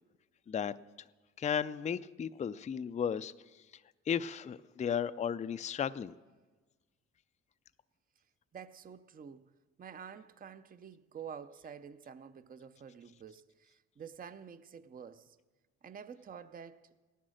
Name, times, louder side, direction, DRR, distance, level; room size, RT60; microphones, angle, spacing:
voice 1, 1.4-3.3 4.1-6.1, left 7 dB, 25° left, 0.4 m, -34 dB
voice 2, 8.5-9.5 9.8-15.4 15.8-16.9, right 7 dB, 30° right, 0.5 m, -49 dB
17.0 x 10.0 x 6.4 m
cardioid pair, 90°, 30 cm